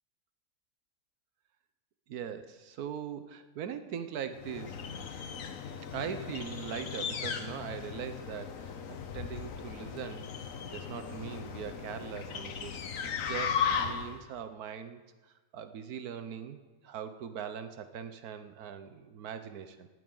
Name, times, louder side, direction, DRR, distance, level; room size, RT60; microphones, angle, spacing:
voice 1, 2.1-4.8 5.9-10.3 10.6-16.6 16.8-19.9, right 8 dB, 80° right, 10 dB, 1.4 m, -41 dB
sound 1, 4.4-14.2, left 7 dB, 65° left, 1.3 m, -37 dB
18.0 x 12.5 x 3.9 m, 1.3 s
omnidirectional pair, 1.6 m